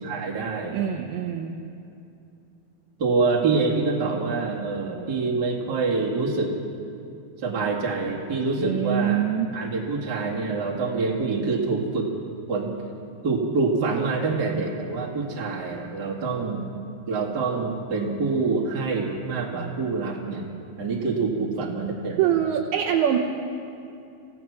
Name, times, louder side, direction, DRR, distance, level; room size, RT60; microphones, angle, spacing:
voice 1, 0.0-0.8 3.0-6.6 7.4-9.2 9.5-12.1 12.5-12.7 13.2-16.7 17.1-20.4 20.8-22.3, right 4 dB, 35° right, -3 dB, 1.9 m, -26 dB
voice 2, 0.7-1.6 8.6-9.5 22.2-23.2, right 10 dB, 80° right, -2 dB, 3.3 m, -24 dB
26.0 x 16.5 x 6.1 m, 2.6 s
omnidirectional pair, 5.2 m